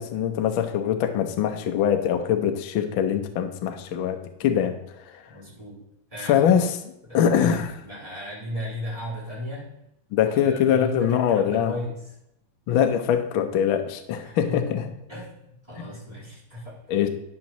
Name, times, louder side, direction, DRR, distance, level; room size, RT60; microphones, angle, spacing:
voice 1, 0.0-4.7 6.2-6.8 7.1-7.8 10.1-11.7 12.7-14.9 16.9-17.1, left 9 dB, 85° left, 5 dB, 1.1 m, -23 dB
voice 2, 5.3-5.8 6.1-6.4 7.1-7.3 7.8-9.7 10.2-12.0 14.2-14.7 15.1-16.8, left 1 dB, 10° right, -8 dB, 3.8 m, -35 dB
9.6 x 9.6 x 3.0 m, 0.82 s
omnidirectional pair, 3.4 m